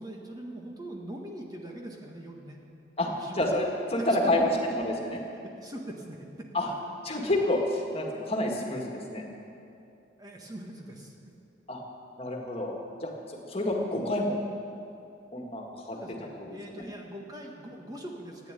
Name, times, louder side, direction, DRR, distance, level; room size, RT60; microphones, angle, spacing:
voice 1, 0.0-2.6 3.1-3.5 5.4-6.5 10.2-11.1 15.9-18.5, right 1 dB, 20° right, 0 dB, 1.5 m, -42 dB
voice 2, 3.0-4.5 4.8-5.2 6.5-6.7 7.0-9.2 11.7-11.8 12.2-14.4 15.3-16.0 16.4-16.9, left 1 dB, 35° left, 0 dB, 2.0 m, -29 dB
15.0 x 9.7 x 9.1 m, 2.6 s
head